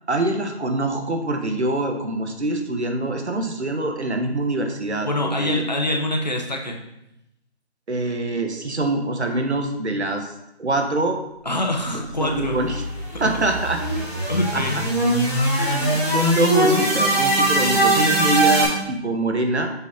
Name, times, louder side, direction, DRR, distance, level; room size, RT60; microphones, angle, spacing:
voice 1, 0.1-5.6 7.9-10.3 10.6-11.2 11.9-12.8 13.2-13.8 14.5-14.6 15.5-19.7, right 2 dB, 80° right, 4 dB, 1.3 m, -24 dB
voice 2, 5.0-6.8 11.4-12.6 13.9-14.8, left 1 dB, 40° left, 1 dB, 0.8 m, -25 dB
sound 1, 12.2-18.6, right 1 dB, 15° right, 2.4 m, -21 dB
7.1 x 4.2 x 4.2 m, 0.85 s
figure-of-eight pair, 175°, 33 cm